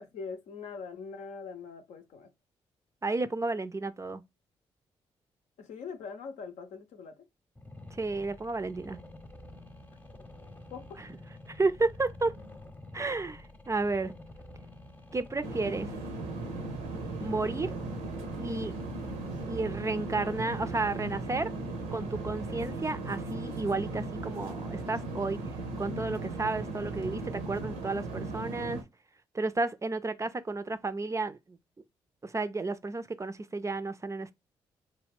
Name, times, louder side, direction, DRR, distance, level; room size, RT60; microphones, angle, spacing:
voice 1, 0.0-2.3 5.6-7.2 10.7-11.0 22.1-22.4, left 5 dB, 70° left, 0.6 m, -42 dB
voice 2, 3.0-4.2 8.0-9.0 11.5-12.3 12.9-14.1 15.1-15.9 17.2-17.7 18.4-18.7 19.4-21.5 21.9-25.4 25.8-28.8 29.3-31.6 32.2-34.3, right 3 dB, 25° right, 0.4 m, -32 dB
sound 1, 7.6-22.7, left 2 dB, 15° left, 0.7 m, -48 dB
sound 2, 15.4-28.8, right 2 dB, 80° right, 0.7 m, -37 dB
3.1 x 2.2 x 3.3 m
hypercardioid pair, 40°, 13 cm